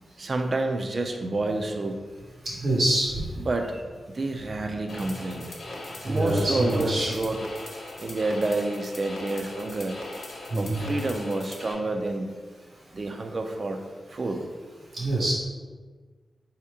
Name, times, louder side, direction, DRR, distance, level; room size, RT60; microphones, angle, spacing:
voice 1, 0.2-2.0 3.4-5.5 6.0-7.4 8.0-10.0 10.6-12.3 12.9-13.8 14.1-14.4, right 2 dB, 50° right, 5 dB, 0.4 m, -29 dB
voice 2, 2.6-3.2 6.1-7.1 10.5-10.8 14.9-15.3, right 1 dB, 75° right, -6 dB, 1.4 m, -25 dB
sound 1, 4.9-11.7, left 1 dB, 85° left, 0.9 m, -40 dB
4.3 x 2.8 x 3.6 m, 1.4 s
cardioid pair, 70°, 0 cm